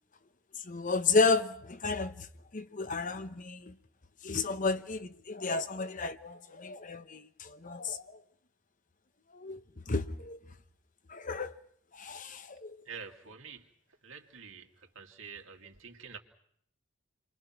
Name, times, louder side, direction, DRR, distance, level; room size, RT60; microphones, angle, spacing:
voice 1, 0.7-2.3 2.5-3.7 4.2-8.1 9.3-9.6 9.9-10.4 11.1-11.5 11.9-12.8, left 4 dB, 40° left, 1.0 m, -32 dB
voice 2, 12.9-13.7 14.0-14.7 14.9-16.2, right 6 dB, 70° right, 2.8 m, -47 dB
29.5 x 23.5 x 6.1 m
head